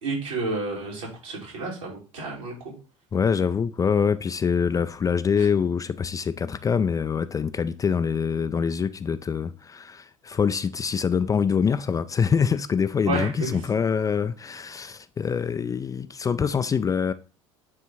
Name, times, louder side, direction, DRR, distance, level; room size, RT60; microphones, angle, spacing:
voice 1, 0.0-2.7 13.1-13.5, right 2 dB, 70° right, 3.4 m, -30 dB
voice 2, 3.1-17.1, left 6 dB, 20° left, 0.4 m, -25 dB
8.6 x 3.6 x 4.3 m
figure-of-eight pair, 65°, 17 cm